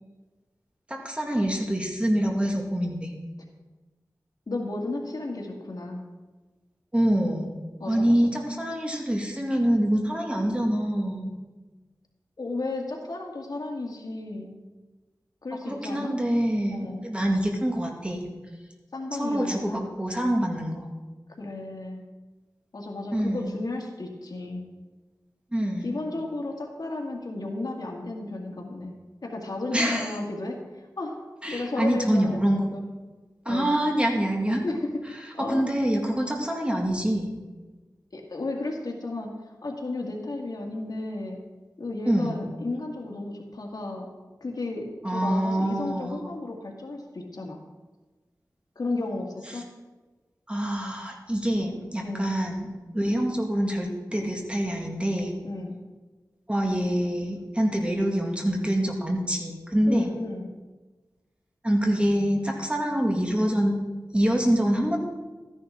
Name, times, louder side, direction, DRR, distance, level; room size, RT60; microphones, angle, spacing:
voice 1, 0.9-3.1 6.9-7.5 7.9-11.3 15.6-18.3 19.1-20.9 23.1-23.5 25.5-25.9 29.7-30.1 31.4-32.6 33.5-34.6 35.5-37.3 42.1-42.4 45.0-46.2 50.5-52.7 52.9-55.3 56.5-60.1 61.6-63.8 64.1-65.0, equal, 15° right, 1 dB, 2.0 m, -25 dB
voice 2, 4.5-6.0 7.8-8.3 12.4-14.5 15.4-16.1 16.7-17.0 18.9-19.8 21.4-22.0 22.7-24.6 25.8-28.9 29.2-31.2 31.5-32.8 33.5-33.7 34.6-34.9 35.3-35.6 38.1-39.3 39.6-41.4 41.8-44.1 44.4-47.6 48.8-49.7 52.0-52.3 55.4-55.7 59.8-60.5, left 2 dB, 70° left, 1 dB, 1.8 m, -33 dB
13.5 x 10.0 x 3.7 m, 1.3 s
wide cardioid pair, 65°, 7 cm